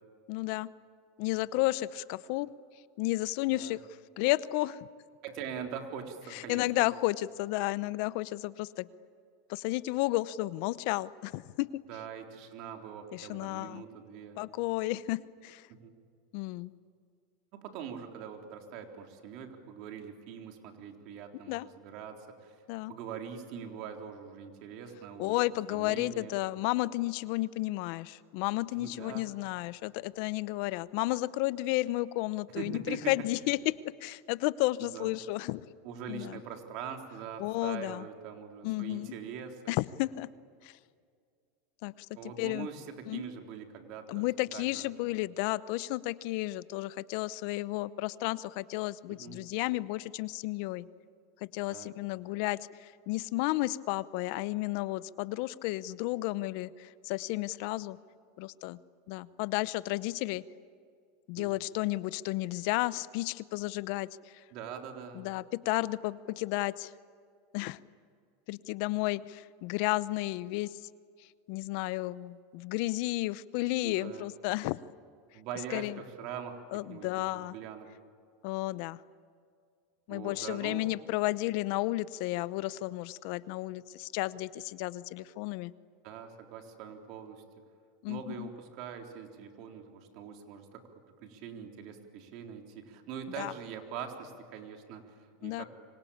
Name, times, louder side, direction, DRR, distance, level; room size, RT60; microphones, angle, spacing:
voice 1, 0.3-0.7 1.2-2.5 3.0-3.8 4.2-4.8 6.3-8.9 9.5-11.8 13.1-13.8 14.4-15.7 16.3-16.7 21.5-21.7 22.7-22.9 25.2-33.8 34.0-35.6 36.1-36.4 37.4-38.0 38.6-39.1 39.7-40.3 40.6-40.7 41.8-42.1 42.4-42.7 43.1-43.2 44.1-50.9 51.5-58.0 58.4-58.8 59.1-60.4 61.3-64.4 65.1-66.9 67.5-67.8 68.5-70.8 71.5-74.8 75.7-76.0 76.7-77.5 78.4-79.0 80.1-85.7 88.0-88.5 93.4-93.5 95.4-95.6, left 19 dB, 60° left, 18 dB, 0.7 m, -32 dB
voice 2, 5.2-6.9 11.9-14.4 15.7-16.0 17.5-22.6 22.9-26.4 28.8-29.3 32.6-33.1 34.9-35.1 35.8-39.7 42.2-44.3 44.5-44.9 49.1-49.4 51.7-51.9 61.4-61.5 64.5-65.2 73.8-74.3 75.3-76.6 76.9-77.1 77.3-77.9 80.1-80.8 86.0-87.4 88.1-90.8 91.2-95.7, right 7 dB, 55° right, 4 dB, 3.7 m, -43 dB
26.5 x 25.0 x 8.7 m, 2.2 s
supercardioid pair, 130°, 0 cm